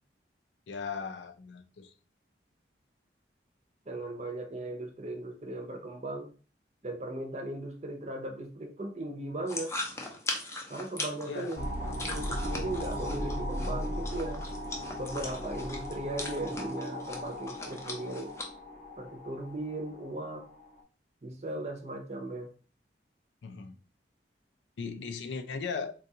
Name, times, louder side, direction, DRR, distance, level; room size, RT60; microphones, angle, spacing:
voice 1, 0.7-1.9 11.3-11.6 23.4-23.8 24.8-25.9, left 5 dB, 80° left, 0.4 m, -37 dB
voice 2, 3.9-6.3 6.8-9.7 10.7-11.6 12.0-14.4 15.0-18.3 19.0-20.4 21.2-22.5, right 1 dB, 40° right, 0.6 m, -37 dB
sound 1, 9.5-18.4, left 2 dB, 15° left, 0.5 m, -40 dB
sound 2, 11.6-20.8, equal, 40° left, 0.8 m, -37 dB
3.8 x 2.3 x 2.7 m
head